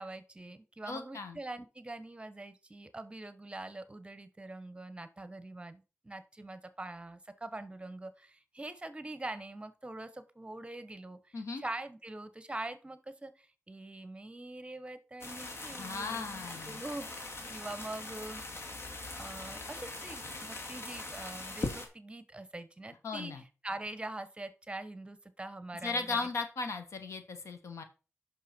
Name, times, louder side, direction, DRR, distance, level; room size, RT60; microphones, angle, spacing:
voice 1, 0.0-18.4 19.2-26.3, right 2 dB, 20° right, 12 dB, 1.1 m, -44 dB
voice 2, 0.9-1.4 11.3-11.6 15.7-16.8 23.0-23.4 25.8-27.8, left 4 dB, 80° left, 8 dB, 1.5 m, -37 dB
sound 1, 15.2-21.9, left 2 dB, 55° left, 2.3 m, -41 dB
9.2 x 6.0 x 4.4 m, 0.33 s
cardioid pair, 65°, 5 cm